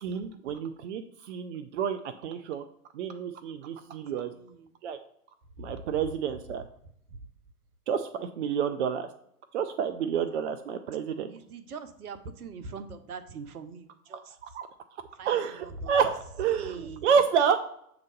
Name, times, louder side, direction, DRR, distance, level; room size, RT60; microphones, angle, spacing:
voice 1, 0.0-2.6 2.9-4.3 4.8-5.0 5.6-6.6 7.9-9.1 9.5-11.3 14.4-14.7 15.3-17.6, right 7 dB, 50° right, 9 dB, 0.5 m, -29 dB
voice 2, 3.8-4.7 5.7-6.0 10.0-10.5 11.3-14.4 15.2-16.0 16.5-17.1, right 4 dB, 70° right, 9 dB, 0.9 m, -43 dB
7.3 x 2.9 x 5.2 m, 0.72 s
figure-of-eight pair, 110°, 46 cm